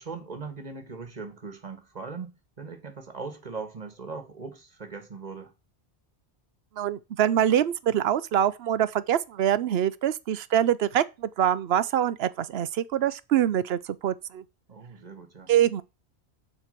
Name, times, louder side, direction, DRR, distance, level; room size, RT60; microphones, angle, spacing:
voice 1, 0.0-5.5 14.7-15.5, right 4 dB, 40° right, 1.7 m, -40 dB
voice 2, 6.8-14.4 15.5-15.8, right 10 dB, 70° right, 0.9 m, -24 dB
7.4 x 4.5 x 6.7 m
omnidirectional pair, 1.1 m